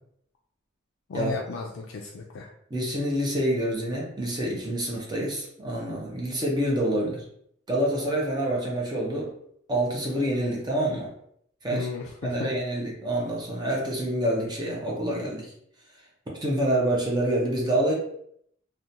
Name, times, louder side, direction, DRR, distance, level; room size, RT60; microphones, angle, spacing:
voice 1, 1.1-2.5 11.7-12.5, left 4 dB, 65° left, 0 dB, 0.3 m, -34 dB
voice 2, 2.7-7.3 7.7-9.3 9.7-11.1 11.6-11.9 12.2-15.5 16.4-17.9, right 1 dB, 20° right, -3 dB, 0.5 m, -27 dB
2.8 x 2.1 x 2.5 m, 0.70 s
head